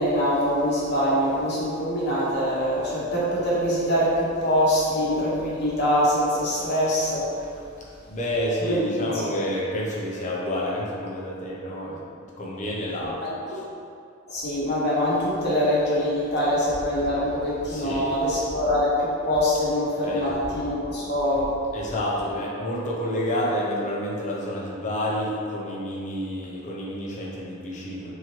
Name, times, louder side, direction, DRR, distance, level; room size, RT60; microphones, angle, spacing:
voice 1, 0.0-7.5 8.7-8.9 9.3-9.4 13.2-13.3 14.3-21.6, equal, 55° left, -7 dB, 1.0 m, -24 dB
voice 2, 8.1-12.1 12.4-13.6 17.7-18.1 20.0-20.3 21.7-28.1, equal, 35° left, -5 dB, 0.7 m, -29 dB
3.7 x 3.0 x 3.0 m, 2.4 s
head